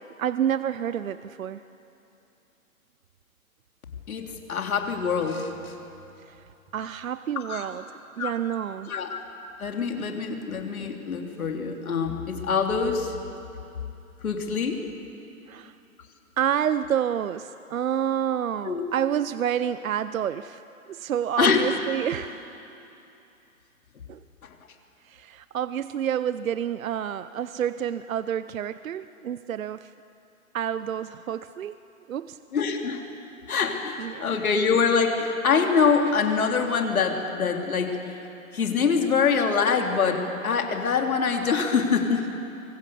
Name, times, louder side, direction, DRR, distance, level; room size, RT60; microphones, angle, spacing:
voice 1, 0.0-1.6 6.2-6.4 6.7-7.9 8.2-8.9 9.9-10.4 15.5-15.7 16.4-20.6 20.9-22.5 24.1-24.2 25.0-29.9 30.5-31.8 32.1-32.4 34.0-34.3, right 9 dB, 70° right, 14 dB, 0.7 m, -29 dB
voice 2, 4.1-5.7 7.4-7.7 8.2-8.3 8.9-9.2 9.6-13.1 14.2-14.8 18.6-18.8 21.4-21.6 32.5-33.0 33.5-38.2 38.5-42.3, left 5 dB, 75° left, 3 dB, 3.3 m, -24 dB
24.0 x 23.5 x 7.0 m, 2.8 s
hypercardioid pair, 180°, 43 cm